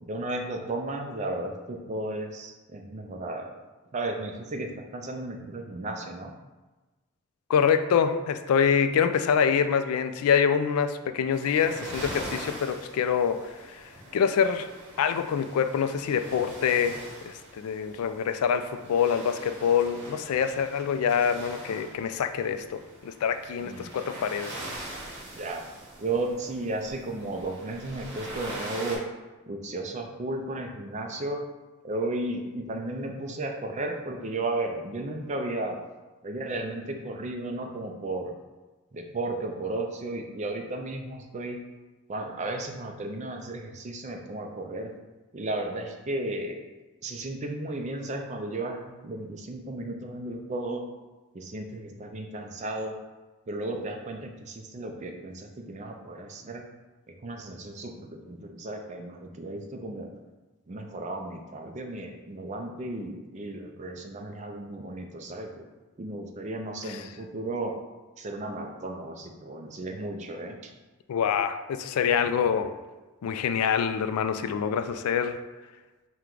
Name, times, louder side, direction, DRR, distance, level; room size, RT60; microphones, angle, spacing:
voice 1, 0.0-3.5 3.9-6.3 23.6-23.9 25.3-25.6 26.0-29.0 29.5-31.4 31.8-35.8 36.2-38.3 38.9-41.6 42.1-44.9 45.3-46.6 47.0-50.8 51.3-53.0 53.5-56.6 57.1-60.1 60.7-65.6 66.0-67.7 68.2-70.7, right 2 dB, 35° right, 3 dB, 0.4 m, -34 dB
voice 2, 7.5-13.8 14.1-14.7 15.0-17.0 17.2-24.5 71.1-72.7 73.2-75.4, left 7 dB, 90° left, 10 dB, 0.3 m, -25 dB
sound 1, 11.3-29.0, right 1 dB, 55° right, 1.1 m, -42 dB
4.5 x 2.2 x 3.8 m, 1.2 s
head